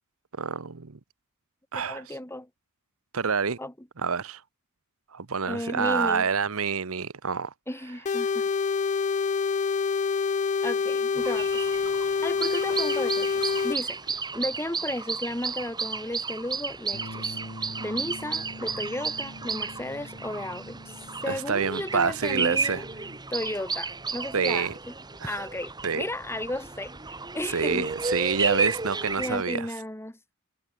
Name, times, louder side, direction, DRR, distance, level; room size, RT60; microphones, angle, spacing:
voice 1, 0.4-1.0 1.7-2.2 3.1-3.6 4.0-4.4 5.1-7.5 21.3-22.8 24.3-24.7 25.2-25.5 25.8-26.0 27.4-29.7, right 5 dB, 65° right, 1.0 m, -27 dB
voice 2, 1.8-2.5 3.6-3.9 5.4-6.3 7.7-8.5 10.6-11.7 12.2-14.0 14.3-17.4 17.8-20.8 21.2-22.9 23.3-24.9 25.2-26.9 27.3-27.9 29.2-30.2, left 1 dB, 10° left, 2.1 m, -34 dB
sound 1, 8.0-13.8, left 5 dB, 35° left, 0.3 m, -26 dB
sound 2, 11.2-29.4, right 4 dB, 20° right, 1.7 m, -33 dB
Bass guitar, 16.9-23.2, left 1 dB, 55° left, 2.2 m, -45 dB
head